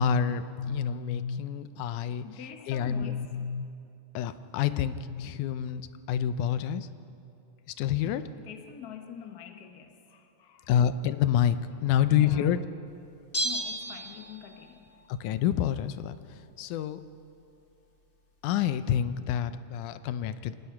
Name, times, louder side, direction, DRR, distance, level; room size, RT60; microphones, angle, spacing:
voice 1, 0.0-3.7 4.1-6.9 7.7-8.3 10.7-12.6 15.1-17.0 18.4-20.5, left 9 dB, 80° left, 12 dB, 2.2 m, -28 dB
voice 2, 2.2-3.2 8.0-10.7 12.2-12.5 13.4-14.9, left 8 dB, 60° left, 4 dB, 1.0 m, -45 dB
Bell, 13.3-14.7 15.0-15.1, right 1 dB, 25° left, 1.3 m, -33 dB
25.5 x 19.0 x 5.9 m, 2.6 s
omnidirectional pair, 3.5 m